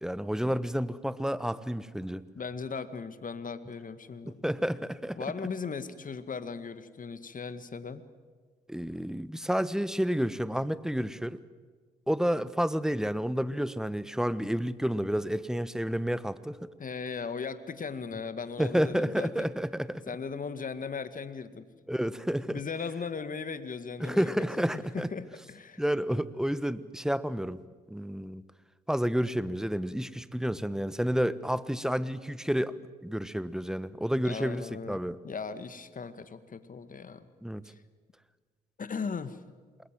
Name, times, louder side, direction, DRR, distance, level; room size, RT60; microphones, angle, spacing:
voice 1, 0.0-2.2 4.3-5.2 8.7-11.4 12.1-16.7 18.6-20.0 21.9-22.6 24.0-25.1 25.8-27.6 27.9-28.4 28.9-32.7 33.0-35.2 37.4-37.6, equal, 5° right, 16 dB, 1.3 m, -30 dB
voice 2, 2.3-4.4 5.2-8.1 16.8-19.5 20.1-21.7 22.5-24.5 24.7-25.8 34.2-37.3 37.7-37.8 38.8-39.4, left 5 dB, 45° left, 12 dB, 1.9 m, -38 dB
27.0 x 21.5 x 7.8 m, 1.5 s
hypercardioid pair, 45°, 20 cm